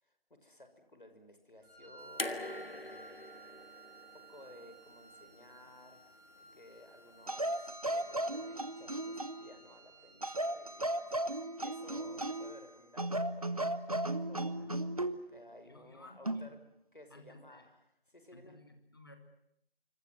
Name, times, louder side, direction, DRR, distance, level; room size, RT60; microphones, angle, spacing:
voice 1, 0.4-3.3 3.7-3.8 4.3-16.6 16.9-18.6, left 1 dB, 55° left, 7 dB, 6.4 m, -57 dB
Wind instrument woodwind instrument, 1.6-10.5, right 3 dB, 5° right, 2.6 m, -57 dB
sound 1, 2.2-5.3 6.5-6.6, left 1 dB, 75° left, 2.6 m, -43 dB
sound 2, 7.3-9.5 10.2-12.6 13.0-15.2 16.2-16.5, right 1 dB, 40° right, 1.4 m, -35 dB
voice 2, 11.9-12.2 14.6-14.7 15.7-16.5 17.1-17.6 18.3-19.2, left 2 dB, 25° left, 6 dB, 2.3 m, -57 dB
26.5 x 25.5 x 7.7 m, 0.74 s
figure-of-eight pair, 170°, 30 cm